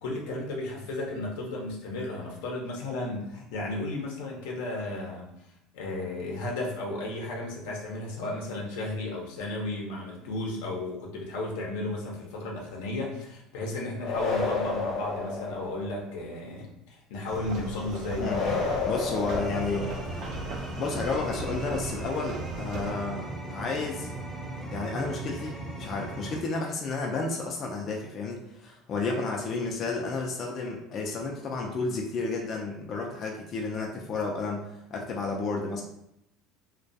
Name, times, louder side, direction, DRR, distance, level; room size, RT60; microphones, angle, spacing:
voice 1, 0.0-5.3 5.7-18.3, left 2 dB, 85° left, -1 dB, 0.6 m, -34 dB
sound 1, 14.0-16.1 18.2-20.2, left 4 dB, 55° left, 0.8 m, -31 dB
sound 2, 17.3-22.9, right 3 dB, 60° right, 0.5 m, -38 dB
voice 2, 18.2-19.9 20.8-24.1 24.7-35.8, left 3 dB, 40° left, 0 dB, 0.4 m, -32 dB
sound 3, 18.2-26.4, right 1 dB, 15° right, 0.6 m, -38 dB
2.2 x 2.2 x 2.6 m, 0.80 s
supercardioid pair, 115°, 0 cm